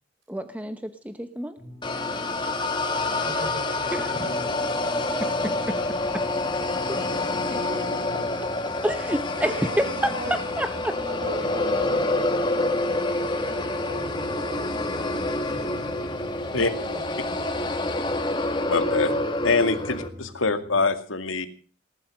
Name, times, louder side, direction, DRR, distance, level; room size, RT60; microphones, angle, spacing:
voice 1, 0.3-1.6 3.9-4.3 5.2-5.7 6.1-6.3 6.9-7.0 8.8-11.0, right 1 dB, 5° right, 9 dB, 0.8 m, -28 dB
sound 1, 1.6-20.9, equal, 25° right, 5.9 m, -45 dB
sound 2, 1.8-20.1, left 2 dB, 20° left, 1.7 m, -27 dB
voice 2, 3.0-5.8 7.0-8.2 8.7-8.9 9.3-10.6 11.0-12.3 13.4-14.7 16.8-17.7, right 1 dB, 50° right, 2 dB, 4.4 m, -39 dB
voice 3, 18.7-19.2 19.4-21.5, left 3 dB, 75° left, 8 dB, 2.3 m, -24 dB
19.5 x 11.5 x 6.5 m, 0.40 s
head